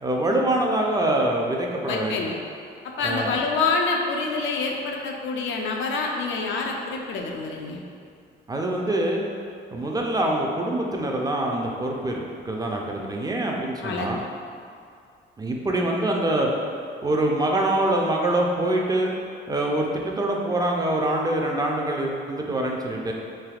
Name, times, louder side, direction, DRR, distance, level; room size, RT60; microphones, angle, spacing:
voice 1, 0.0-2.2 3.0-3.3 8.5-9.2 9.7-14.2 15.4-16.5 17.0-19.1 19.5-23.1, right 1 dB, 20° right, 0 dB, 0.3 m, -24 dB
voice 2, 1.8-2.3 3.0-7.8 13.8-14.1, left 4 dB, 75° left, 1 dB, 0.4 m, -26 dB
3.3 x 2.7 x 2.3 m, 2.3 s
cardioid pair, 90°, 20 cm